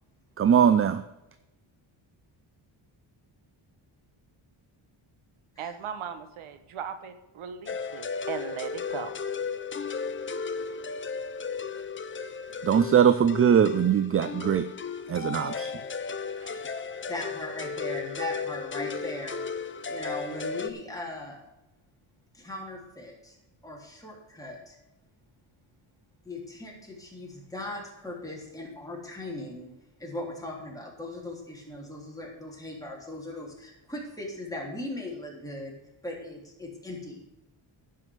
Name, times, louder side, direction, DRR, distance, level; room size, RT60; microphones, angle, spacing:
voice 1, 0.4-1.0 12.6-14.7 15.1-15.7 16.4-16.6, right 8 dB, 30° right, 12 dB, 0.4 m, -21 dB
voice 2, 5.6-9.1, right 8 dB, 85° right, 10 dB, 1.1 m, -38 dB
sound 1, 7.7-20.7, left 5 dB, 25° left, 0.6 m, -35 dB
voice 3, 17.1-19.4 19.9-21.4 22.3-23.4 23.6-24.8 26.2-29.7 30.0-37.3, left 1 dB, 5° left, -3 dB, 3.4 m, -38 dB
10.5 x 5.7 x 7.9 m, 0.96 s
cardioid pair, 115°, 48 cm